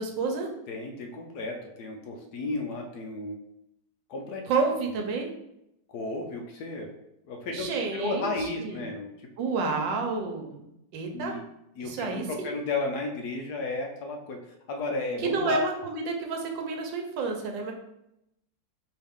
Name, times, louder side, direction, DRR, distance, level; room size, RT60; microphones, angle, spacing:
voice 1, 0.0-0.5 4.5-5.3 7.5-8.8 9.4-10.6 10.9-11.3 11.8-12.5 15.2-17.7, right 4 dB, 80° right, 2 dB, 1.5 m, -30 dB
voice 2, 0.7-3.4 4.1-4.5 4.8-4.9 5.9-6.9 7.3-9.3 11.1-11.5 11.8-15.6, left 3 dB, 65° left, 2 dB, 1.1 m, -33 dB
4.6 x 3.3 x 3.5 m, 0.82 s
omnidirectional pair, 2.0 m